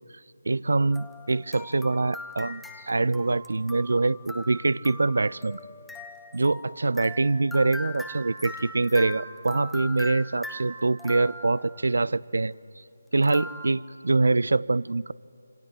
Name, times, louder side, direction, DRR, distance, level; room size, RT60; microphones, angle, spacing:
voice 1, 0.5-5.6 6.3-12.5 13.1-15.1, right 3 dB, 55° right, 0.5 m, -24 dB
sound 1, 0.9-11.8 13.2-13.7, left 2 dB, 5° left, 1.2 m, -41 dB
27.5 x 26.5 x 8.0 m
figure-of-eight pair, 155°, 0 cm